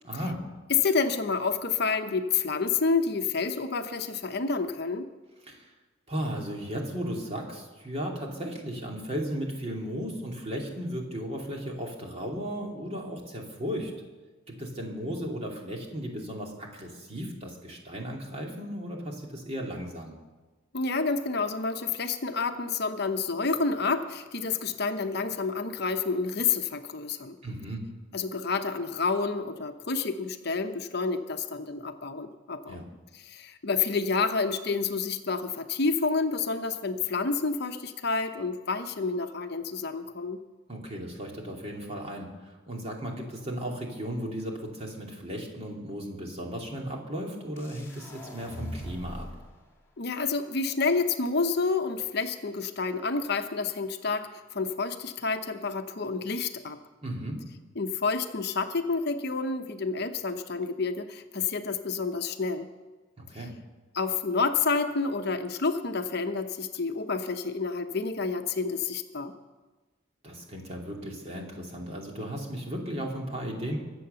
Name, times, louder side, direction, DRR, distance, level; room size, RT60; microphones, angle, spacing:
voice 1, 0.0-0.4 5.5-5.7 6.1-13.9 14.5-20.1 27.4-27.8 32.7-32.8 40.7-49.3 57.0-57.4 63.2-63.5 70.2-73.8, equal, 30° right, 0 dB, 2.6 m, -35 dB
voice 2, 0.7-5.1 20.7-27.4 28.1-32.8 33.1-40.4 50.0-56.8 57.8-62.7 63.9-69.3, left 4 dB, 50° left, 7 dB, 0.9 m, -29 dB
sound 1, 47.6-49.5, equal, 10° left, 2.3 m, -40 dB
23.0 x 7.8 x 6.9 m, 1.3 s
head